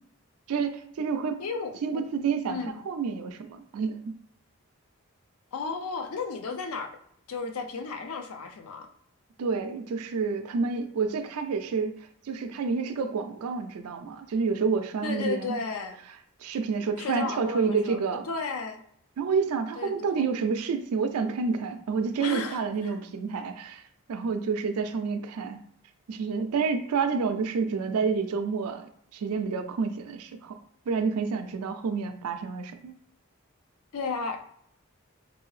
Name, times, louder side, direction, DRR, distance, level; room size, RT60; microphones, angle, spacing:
voice 1, 0.5-1.4 1.8-2.6 2.9-4.1 9.4-11.9 12.2-15.5 16.4-18.2 19.2-23.8 24.1-25.6 26.1-30.6 30.9-32.9, right 5 dB, 85° right, 8 dB, 0.4 m, -29 dB
voice 2, 1.4-2.0 2.5-2.8 5.5-6.9 7.3-8.9 15.0-16.0 17.0-18.0 18.3-18.8 19.8-20.3 22.2-23.0 33.9-34.4, left 4 dB, 80° left, 5 dB, 0.4 m, -34 dB
2.7 x 2.6 x 3.1 m, 0.67 s
head